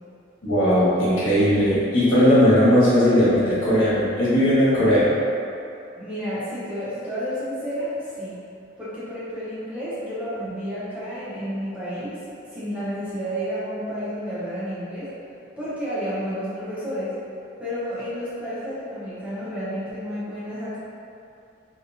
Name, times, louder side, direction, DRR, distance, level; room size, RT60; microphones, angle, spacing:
voice 1, 0.4-5.1, equal, 85° left, -10 dB, 1.5 m, -18 dB
voice 2, 6.0-8.4 8.8-15.1 15.6-17.1 17.6-20.8, equal, 5° right, -12 dB, 1.0 m, -31 dB
4.0 x 3.3 x 2.7 m, 2.6 s
head